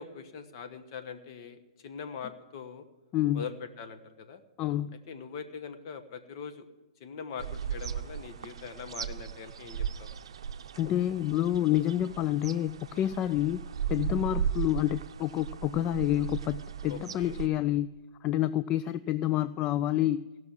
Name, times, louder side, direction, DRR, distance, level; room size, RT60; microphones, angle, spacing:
voice 1, 0.0-2.9 3.3-4.4 5.1-6.7 7.0-10.1 16.9-17.4, left 6 dB, 45° left, 8 dB, 1.2 m, -42 dB
voice 2, 3.1-3.5 4.6-5.0 10.8-13.6 13.9-20.3, left 13 dB, 30° left, 14 dB, 0.3 m, -28 dB
sound 1, 7.4-17.5, right 8 dB, 65° right, 0.6 m, -37 dB
16.5 x 6.2 x 7.4 m, 1.2 s
figure-of-eight pair, 115°, 3 cm